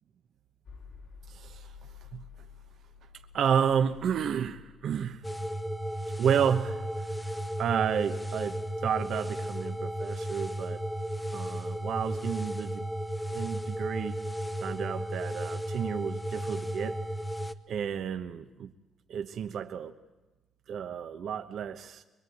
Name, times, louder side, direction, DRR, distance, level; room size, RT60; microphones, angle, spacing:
sound 1, 0.6-16.6, left 6 dB, 75° left, 4.0 m, -55 dB
voice 1, 1.3-2.2 3.3-5.2 6.2-10.8 11.3-12.8 13.3-14.2 14.6-17.0 17.7-18.7 19.1-19.9 20.7-22.0, right 8 dB, 65° right, 7 dB, 1.0 m, -31 dB
sound 2, 5.2-17.5, right 1 dB, 5° left, 1.0 m, -34 dB
23.0 x 22.0 x 9.3 m, 1.1 s
cardioid pair, 90°, 0 cm